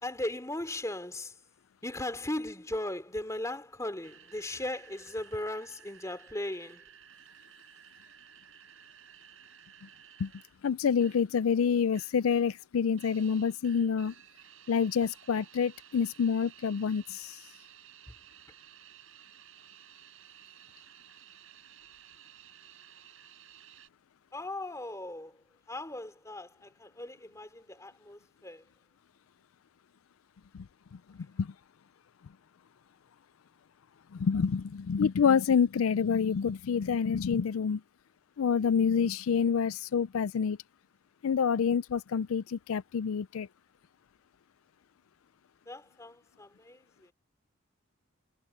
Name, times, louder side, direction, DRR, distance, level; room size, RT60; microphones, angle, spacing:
voice 1, 0.0-1.4 1.8-6.8 18.1-18.2 24.3-25.4 25.7-28.6 45.7-47.1, left 1 dB, 15° left, 3.1 m, -38 dB
sound 1, 4.0-11.4 11.7-12.3 12.6-23.9, right 10 dB, 75° right, 5.1 m, -55 dB
voice 2, 10.6-14.1 14.7-17.4 30.5-30.7 31.4-31.5 34.1-37.8 38.4-40.6 41.2-43.5, left 6 dB, 80° left, 0.4 m, -27 dB
head